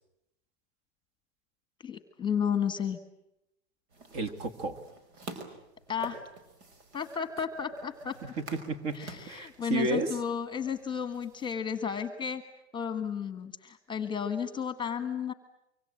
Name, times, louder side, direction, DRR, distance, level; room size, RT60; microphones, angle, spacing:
voice 1, 1.8-3.0 5.9-6.2 6.9-8.1 8.9-12.4 12.7-15.3, left 7 dB, 15° left, 10 dB, 1.4 m, -33 dB
sound 1, 3.9-11.5, right 3 dB, 75° right, 5.5 m, -48 dB
voice 2, 4.1-4.8 8.2-9.0 9.3-10.1, right 3 dB, 45° right, 11 dB, 2.3 m, -32 dB
25.0 x 24.0 x 8.8 m, 0.83 s
supercardioid pair, 150°, 34 cm